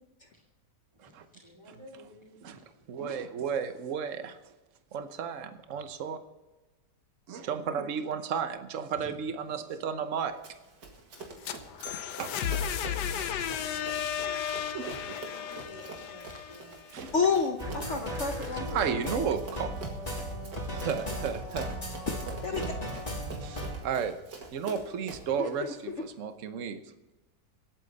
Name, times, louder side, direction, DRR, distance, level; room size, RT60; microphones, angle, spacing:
voice 1, 0.9-2.8 9.0-9.6 13.0-13.8 15.0-17.3, equal, 15° right, -4 dB, 2.5 m, -53 dB
voice 2, 2.4-4.4 4.9-6.2 7.3-10.4 12.2-12.3 14.7-15.0 16.9-17.1 18.7-19.7 20.7-21.8 22.3-22.6 23.4-24.2 24.5-26.8, right 7 dB, 50° right, 9 dB, 1.2 m, -33 dB
Run, 10.4-25.4, right 3 dB, 80° right, 2.6 m, -45 dB
sound 1, 11.2-17.1, left 9 dB, 75° left, 1.4 m, -34 dB
voice 3, 17.1-19.2 22.4-22.7 25.4-25.5, left 5 dB, 50° left, 4 dB, 1.1 m, -30 dB
sound 2, 17.6-23.7, equal, 20° left, 2.6 m, -36 dB
25.5 x 8.5 x 4.1 m, 1.1 s
omnidirectional pair, 1.8 m